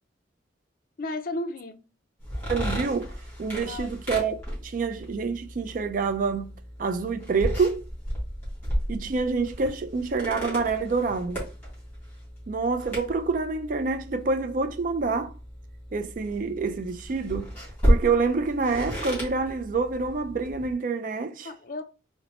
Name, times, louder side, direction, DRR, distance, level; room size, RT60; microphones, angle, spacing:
voice 1, 1.0-1.8 3.7-4.0 21.4-21.8, left 2 dB, 50° left, 0.4 m, -33 dB
sound 1, 2.2-20.7, equal, 10° left, 1.7 m, -33 dB
voice 2, 2.5-3.1 3.4-7.8 8.9-11.4 12.5-15.3 15.9-17.5 17.9-21.5, right 4 dB, 45° right, 0.3 m, -27 dB
4.0 x 2.1 x 3.0 m
head